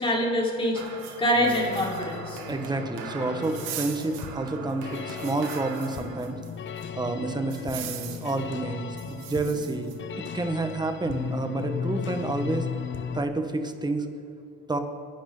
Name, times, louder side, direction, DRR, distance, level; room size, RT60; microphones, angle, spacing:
voice 1, 0.0-2.4, equal, 15° left, -3 dB, 4.5 m, -25 dB
sound 1, 0.7-6.5 6.8-6.9 7.5-8.4 9.0-10.0, right 8 dB, 75° right, 1.8 m, -40 dB
sound 2, 1.3-13.2, left 7 dB, 35° left, 0.9 m, -36 dB
voice 2, 2.5-6.4 6.9-12.7 13.1-14.1 14.7-14.8, right 2 dB, 15° right, 6 dB, 1.6 m, -29 dB
28.0 x 11.5 x 4.0 m, 2.5 s
supercardioid pair, 100°, 32 cm